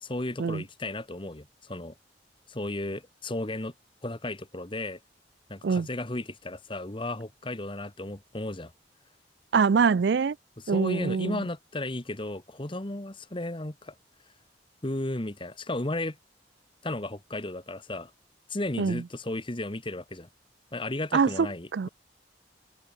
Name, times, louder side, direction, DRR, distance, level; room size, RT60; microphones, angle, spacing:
voice 1, 0.0-1.9 2.5-3.7 4.0-5.0 5.5-8.7 10.6-13.9 14.8-16.2 16.8-18.1 18.5-20.3 20.7-21.9, left 1 dB, 30° left, 1.6 m, -34 dB
voice 2, 9.5-10.4 10.7-11.4 18.8-19.0 21.1-21.9, right 5 dB, 65° right, 0.4 m, -24 dB
open air
head